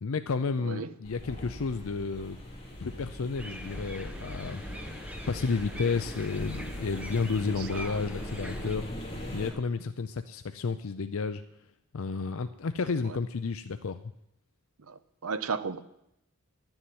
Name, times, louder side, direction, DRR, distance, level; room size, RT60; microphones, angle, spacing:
voice 1, 0.0-2.4 2.8-4.6 5.3-8.9 9.3-11.4 11.9-14.0, left 4 dB, 70° left, 10 dB, 0.5 m, -31 dB
voice 2, 0.6-0.9 7.6-8.0 13.0-13.2 14.9-15.8, right 5 dB, 75° right, 13 dB, 0.8 m, -35 dB
sound 1, 1.0-9.5, equal, 30° left, 2.9 m, -40 dB
sound 2, 3.4-8.7, equal, 5° right, 1.1 m, -45 dB
12.0 x 7.1 x 9.3 m, 0.81 s
head